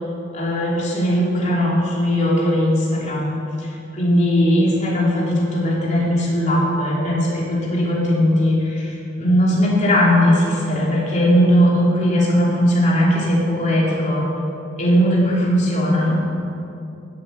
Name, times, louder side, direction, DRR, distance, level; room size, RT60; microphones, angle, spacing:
voice 1, 0.3-14.2 14.8-16.2, equal, 35° left, -4 dB, 3.2 m, -18 dB
15.0 x 8.5 x 7.0 m, 2.7 s
head